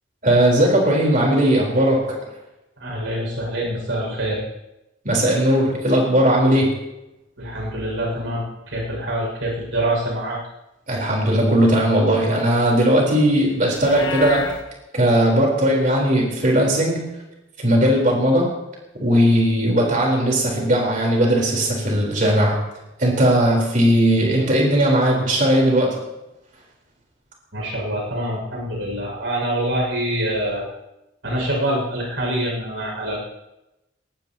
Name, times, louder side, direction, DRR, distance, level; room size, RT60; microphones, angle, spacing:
voice 1, 0.2-2.1 5.0-6.8 10.9-14.5 14.9-17.1 17.6-18.5 18.9-22.6 23.0-25.9, right 1 dB, 45° right, -2 dB, 4.5 m, -18 dB
voice 2, 2.8-4.4 7.4-10.4 27.5-30.6 31.2-33.2, right 1 dB, 75° right, -2 dB, 6.9 m, -25 dB
Livestock farm animals working animals, 13.7-14.6, left 5 dB, 75° left, 1.6 m, -30 dB
21.0 x 19.0 x 3.1 m, 0.95 s
head